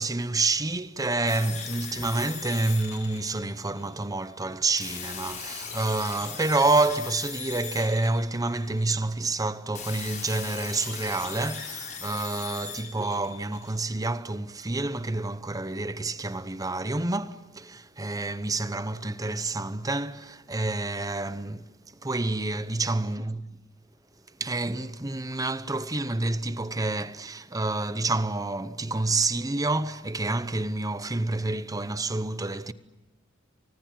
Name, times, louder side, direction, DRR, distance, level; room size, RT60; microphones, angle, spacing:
voice 1, 0.0-21.7 22.0-23.4 24.4-32.7, right 2 dB, 20° right, 0.9 m, -28 dB
sound 1, 1.3-3.9 4.8-8.9 9.7-13.9, left 7 dB, 40° left, 6.4 m, -39 dB
30.0 x 24.5 x 7.5 m
head